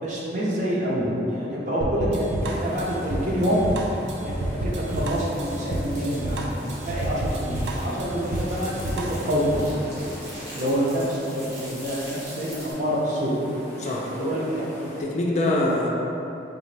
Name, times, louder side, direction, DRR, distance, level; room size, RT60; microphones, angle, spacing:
voice 1, 0.0-3.6 4.2-9.8 10.5-13.3 13.8-14.7, equal, 45° right, -6 dB, 0.7 m, -27 dB
sound 1, 1.8-9.7, right 1 dB, 85° right, 0.4 m, -30 dB
sound 2, 2.4-15.0, left 1 dB, 10° left, 0.8 m, -41 dB
sound 3, 4.9-12.7, right 1 dB, 70° right, 1.3 m, -43 dB
voice 2, 13.8-14.3 15.0-15.9, left 1 dB, 40° left, -3 dB, 0.4 m, -24 dB
3.9 x 3.1 x 3.2 m, 2.9 s
head